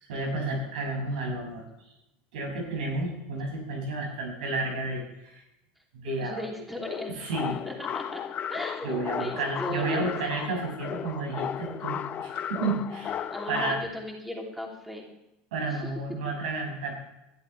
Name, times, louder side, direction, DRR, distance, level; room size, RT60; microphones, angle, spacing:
voice 1, 0.0-1.6 2.3-5.4 5.9-6.4 7.1-7.6 8.8-13.2 13.5-13.8 15.5-16.9, right 2 dB, 85° right, 1 dB, 6.4 m, -31 dB
voice 2, 6.2-7.1 7.6-8.2 8.5-10.1 13.3-15.1 15.7-15.8 16.2-16.3, equal, 5° right, -1 dB, 3.0 m, -36 dB
sound 1, 6.8-13.8, left 9 dB, 35° left, 0.8 m, -35 dB
21.0 x 12.5 x 3.4 m, 0.92 s
supercardioid pair, 115°, 4 cm